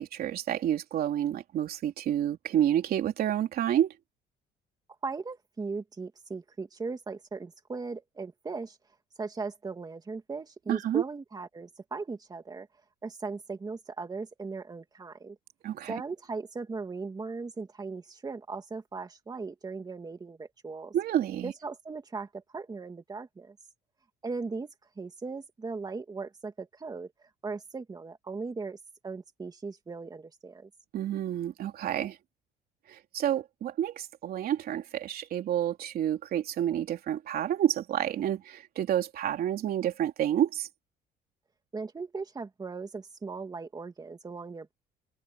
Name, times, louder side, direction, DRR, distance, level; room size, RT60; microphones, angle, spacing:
voice 1, 0.0-3.9 10.7-11.0 15.6-15.9 20.9-21.5 30.9-32.2 32.9-40.7, right 11 dB, 65° right, 3.2 m, -29 dB
voice 2, 5.0-8.8 9.2-12.7 13.0-15.4 15.9-20.9 21.4-23.6 24.2-24.7 25.0-28.8 29.0-30.7 41.7-44.7, right 4 dB, 25° right, 2.5 m, -38 dB
cardioid pair, 110°, 17 cm